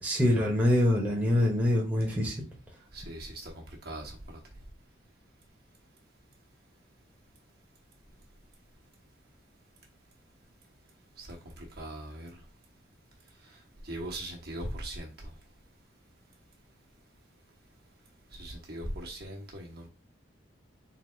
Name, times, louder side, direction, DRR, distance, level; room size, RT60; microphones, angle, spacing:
voice 1, 0.0-2.5, left 1 dB, 10° right, -3 dB, 1.0 m, -25 dB
voice 2, 2.9-4.2 11.2-12.3 13.8-15.3 18.3-19.9, right 1 dB, 50° right, -1 dB, 1.2 m, -40 dB
3.9 x 2.7 x 4.4 m, 0.29 s
head